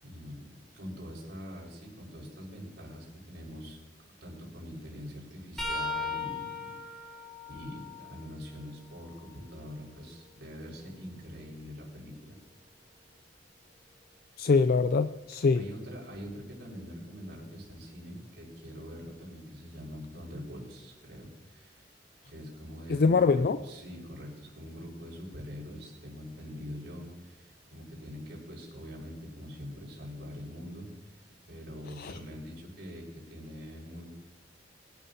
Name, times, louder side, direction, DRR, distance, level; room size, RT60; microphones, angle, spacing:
voice 1, 0.0-3.8 4.2-12.4 15.5-21.9 22.2-31.2 31.5-34.1, equal, 75° right, -3 dB, 5.0 m, -44 dB
sound 1, 5.6-9.3 9.9-11.8 14.7-14.9 16.1-16.3 17.6-17.7, left 3 dB, ahead, 2.9 m, -40 dB
voice 2, 14.4-15.6 22.9-23.6 32.0-32.2, left 4 dB, 55° left, 11 dB, 0.4 m, -24 dB
22.5 x 12.0 x 2.8 m, 1.0 s
head